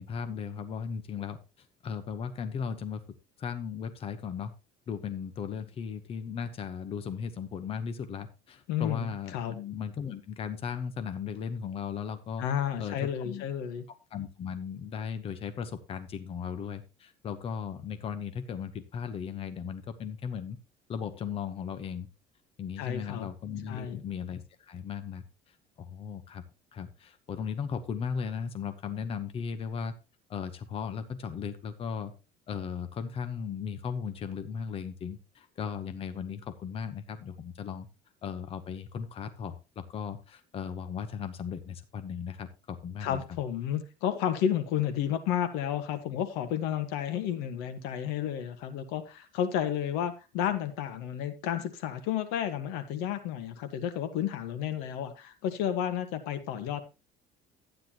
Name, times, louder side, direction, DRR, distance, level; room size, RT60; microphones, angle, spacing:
voice 1, 0.0-3.0 3.4-4.5 4.9-12.4 12.8-13.5 14.1-20.6 20.9-22.1 22.6-26.4 26.7-29.9 30.3-32.1 32.5-37.9 38.2-43.2, left 7 dB, 35° left, 9 dB, 1.0 m, -37 dB
voice 2, 8.7-9.5 12.4-13.8 22.8-23.3 23.7-24.0 43.0-56.8, left 9 dB, 85° left, 10 dB, 1.6 m, -31 dB
12.0 x 9.8 x 3.0 m, 0.28 s
cardioid pair, 145°, 16 cm